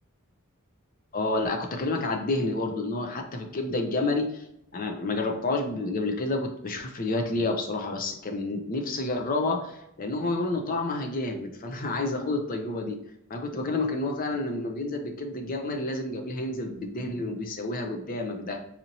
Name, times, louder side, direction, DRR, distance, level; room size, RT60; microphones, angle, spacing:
voice 1, 1.1-4.4 4.7-13.0 13.3-18.6, left 2 dB, 40° left, 3 dB, 0.5 m, -29 dB
4.1 x 2.9 x 2.7 m, 0.80 s
head